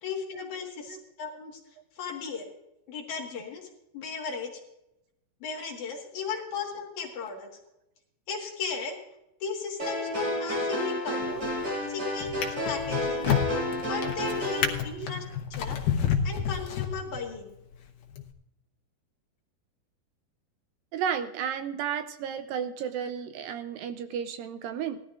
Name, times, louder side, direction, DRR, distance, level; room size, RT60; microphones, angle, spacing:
voice 1, 0.0-1.6 2.0-2.5 2.9-3.7 3.9-4.6 5.4-7.6 8.3-9.0 9.4-11.5 11.9-13.3 13.9-15.2 15.5-15.8 16.2-17.5, left 5 dB, 60° left, -1 dB, 2.8 m, -36 dB
sound 1, 9.8-14.7, left 1 dB, 40° right, 7.0 m, -30 dB
Drawer open or close, 11.2-11.7 12.2-17.4 18.1-18.3, left 8 dB, 80° left, 2.9 m, -30 dB
voice 2, 20.9-25.0, right 8 dB, 80° right, 9 dB, 2.3 m, -33 dB
19.5 x 13.0 x 2.5 m, 0.87 s
omnidirectional pair, 4.3 m